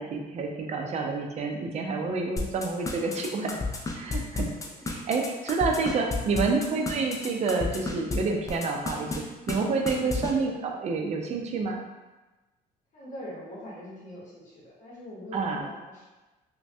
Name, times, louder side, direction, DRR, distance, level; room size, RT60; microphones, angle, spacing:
voice 1, 0.0-3.6 4.0-4.6 4.9-9.1 9.5-11.8 15.3-15.6, right 4 dB, 40° right, 2 dB, 0.5 m, -28 dB
sound 1, 2.4-8.2 8.5-9.2 9.5-9.6 9.9-10.3, left 3 dB, 20° left, 0.4 m, -31 dB
voice 2, 4.1-4.8 12.9-16.1, equal, 45° left, -6 dB, 0.9 m, -43 dB
3.1 x 2.2 x 2.7 m, 1.1 s
cardioid pair, 110°, 17 cm